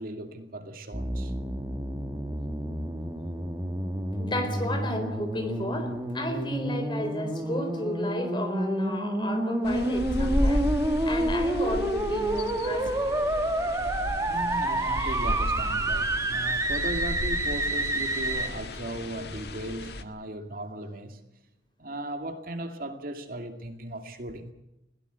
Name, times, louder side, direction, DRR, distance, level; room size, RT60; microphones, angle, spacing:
voice 1, 0.0-1.3 14.3-21.2 21.8-24.5, right 1 dB, 55° right, 6 dB, 2.4 m, -37 dB
sound 1, 0.9-18.5, right 1 dB, 20° right, 1.9 m, -29 dB
voice 2, 4.1-10.7 11.0-13.0, left 1 dB, 25° left, 7 dB, 4.3 m, -33 dB
sound 2, 9.6-20.0, left 1 dB, 60° left, 1.7 m, -33 dB
21.5 x 17.0 x 8.2 m, 0.89 s
head